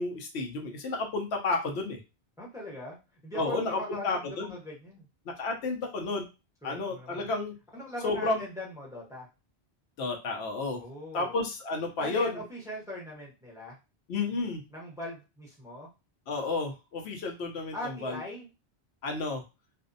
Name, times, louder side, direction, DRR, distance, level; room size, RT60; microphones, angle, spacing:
voice 1, 0.0-2.0 3.3-4.5 5.3-6.2 6.6-7.5 8.0-8.4 10.0-10.8 11.1-12.4 14.1-14.6 16.3-18.2 19.0-19.4, left 3 dB, 85° left, 3 dB, 0.9 m, -31 dB
voice 2, 2.4-5.1 6.6-7.2 7.7-9.3 10.7-11.4 12.0-13.8 14.7-15.9 17.7-18.5, left 1 dB, 5° right, -3 dB, 0.7 m, -40 dB
2.6 x 2.1 x 2.5 m, 0.27 s
omnidirectional pair, 1.1 m